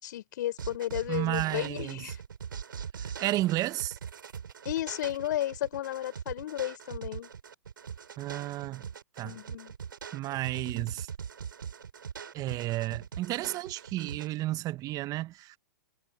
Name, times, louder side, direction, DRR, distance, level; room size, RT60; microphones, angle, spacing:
voice 1, 0.0-2.2 4.7-7.3 9.2-9.7, left 13 dB, 60° left, 5.7 m, -33 dB
sound 1, 0.6-14.3, right 7 dB, 75° right, 7.5 m, -41 dB
voice 2, 1.1-2.1 3.0-4.0 8.2-8.9 9.2-9.3 10.1-11.1 12.3-15.6, right 16 dB, 35° right, 1.3 m, -32 dB
hypercardioid pair, 110°, 11 cm